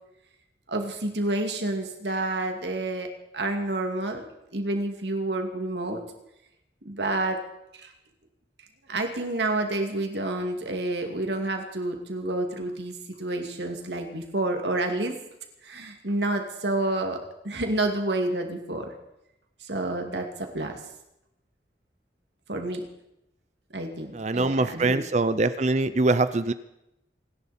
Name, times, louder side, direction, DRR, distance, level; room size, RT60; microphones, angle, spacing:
voice 1, 0.7-6.0 6.8-7.4 7.7-7.9 8.9-15.2 15.6-18.9 19.6-20.8 22.5-22.9 23.7-25.0, right 2 dB, 80° right, 4 dB, 2.5 m, -29 dB
voice 2, 24.1-26.5, right 2 dB, 40° right, 13 dB, 0.6 m, -23 dB
28.0 x 10.5 x 4.4 m, 0.86 s
head